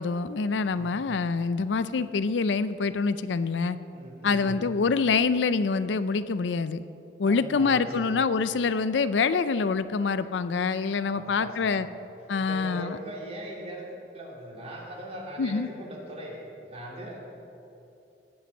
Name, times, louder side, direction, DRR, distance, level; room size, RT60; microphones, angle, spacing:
voice 1, 0.0-3.8 4.2-6.8 7.2-11.9 12.3-13.0 15.4-15.7, left 4 dB, 75° left, 14 dB, 0.4 m, -26 dB
voice 2, 0.8-1.1 3.9-4.6 7.2-8.2 11.1-11.9 12.4-17.2, equal, 35° right, -2 dB, 2.4 m, -40 dB
18.5 x 7.9 x 5.5 m, 2.8 s
head